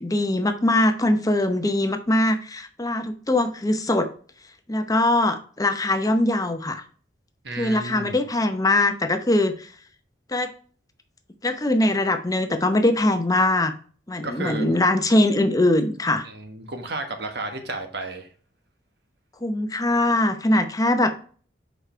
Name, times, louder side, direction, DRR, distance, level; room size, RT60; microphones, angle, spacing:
voice 1, 0.0-4.1 4.7-6.8 7.6-9.7 10.3-10.5 11.4-13.7 14.1-16.3 19.4-21.1, left 1 dB, 20° left, 8 dB, 0.7 m, -22 dB
voice 2, 7.4-8.2 14.2-14.8 16.2-18.3, right 2 dB, 65° right, 5 dB, 1.5 m, -32 dB
7.0 x 5.1 x 4.5 m, 0.43 s
head